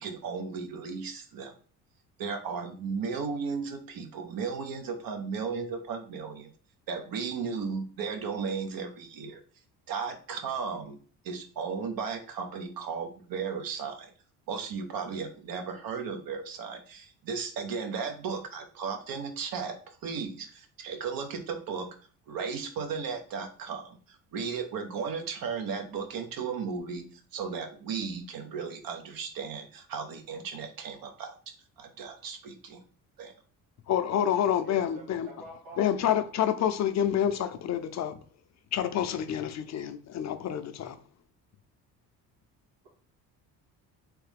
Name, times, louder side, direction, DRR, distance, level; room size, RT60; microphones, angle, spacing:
voice 1, 0.0-1.5 2.2-6.5 6.9-9.4 9.9-11.0 11.2-14.1 14.5-21.9 22.3-27.0 27.3-31.3 31.8-32.8 33.2-33.3, right 5 dB, 65° right, 0.9 m, -35 dB
voice 2, 33.9-35.3 35.8-38.2 38.7-41.0, left 9 dB, 45° left, 0.6 m, -28 dB
voice 3, 34.6-36.1, equal, 90° right, 1.7 m, -47 dB
3.3 x 3.1 x 3.4 m
supercardioid pair, 75°, 38 cm